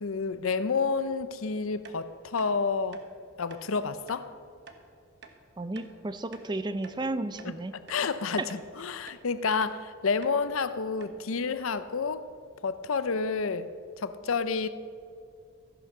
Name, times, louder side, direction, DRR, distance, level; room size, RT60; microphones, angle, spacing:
voice 1, 0.0-3.0 3.4-4.3 7.4-12.3 12.6-13.7 14.0-14.7, left 5 dB, 80° left, 0.6 m, -30 dB
sound 1, 1.8-2.0 2.4-2.5 2.9-3.1 3.5-3.6 4.1-4.2 4.7-4.8 5.2-5.4 5.8-5.9 6.3-7.0 7.4-7.5 7.9-8.0 8.5-8.7 9.1-9.2 9.6-9.8 10.2-10.4 10.7-10.8 11.0-11.2, right 4 dB, 55° right, 1.2 m, -50 dB
voice 2, 5.6-7.7 8.4-8.5, right 2 dB, 20° right, 0.4 m, -33 dB
14.5 x 9.9 x 6.0 m
head